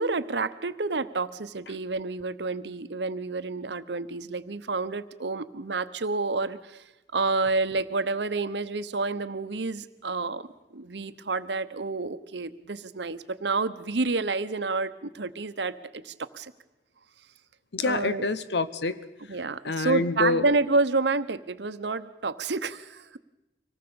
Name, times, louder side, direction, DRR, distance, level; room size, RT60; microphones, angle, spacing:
voice 1, 0.0-6.8 7.1-10.5 10.7-16.5 17.8-18.3 19.3-23.2, right 3 dB, 75° right, 12 dB, 0.9 m, -29 dB
voice 2, 17.7-19.1 19.6-20.4, left 3 dB, 75° left, 14 dB, 0.9 m, -27 dB
25.0 x 18.5 x 7.0 m, 1.0 s
head